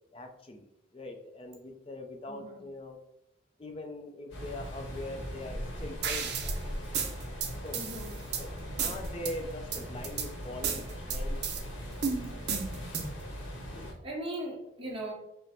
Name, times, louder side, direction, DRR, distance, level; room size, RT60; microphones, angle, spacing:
voice 1, 0.1-3.0 3.6-6.6 7.6-7.8 8.3-8.5 8.8-11.4 13.7-13.9, left 1 dB, 30° left, 4 dB, 0.5 m, -42 dB
voice 2, 2.3-2.7 7.7-8.1 14.0-15.1, right 1 dB, 30° right, -3 dB, 1.0 m, -38 dB
sound 1, 4.3-13.9, equal, 80° left, 1.1 m, -39 dB
sound 2, 6.0-6.6 6.9-8.4 8.8-9.3 9.7-10.3 10.6-11.6 12.0-13.2, right 6 dB, 55° right, 0.6 m, -33 dB
5.0 x 2.2 x 4.3 m, 0.84 s
head